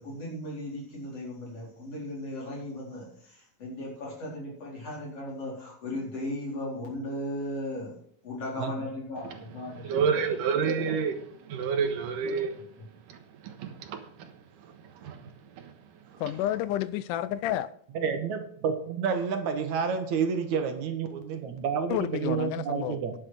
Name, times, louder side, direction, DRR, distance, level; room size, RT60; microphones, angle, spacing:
voice 1, 0.0-7.9 8.2-9.9, left 1 dB, 45° left, 5.3 m, -36 dB
voice 2, 9.2-12.6 12.9-15.8 16.1-16.2, right 6 dB, 85° right, 3.0 m, -31 dB
voice 3, 16.2-17.7 21.9-23.0, left 13 dB, 80° left, 2.1 m, -30 dB
voice 4, 17.9-23.1, right 6 dB, 65° right, 2.5 m, -30 dB
10.5 x 7.6 x 6.4 m
omnidirectional pair, 3.7 m